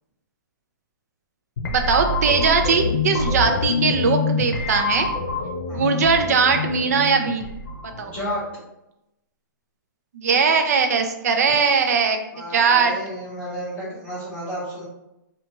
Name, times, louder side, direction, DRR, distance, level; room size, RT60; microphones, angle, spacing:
sound 1, 1.6-8.4, left 4 dB, 65° left, 0.7 m, -26 dB
voice 1, 1.7-5.1 5.7-7.5 8.0-8.1 10.1-12.9, right 5 dB, 50° right, 6 dB, 0.4 m, -20 dB
voice 2, 8.0-8.4 12.3-14.8, equal, 10° left, -13 dB, 0.7 m, -32 dB
2.5 x 2.3 x 2.9 m, 0.89 s
hypercardioid pair, 170°, 11 cm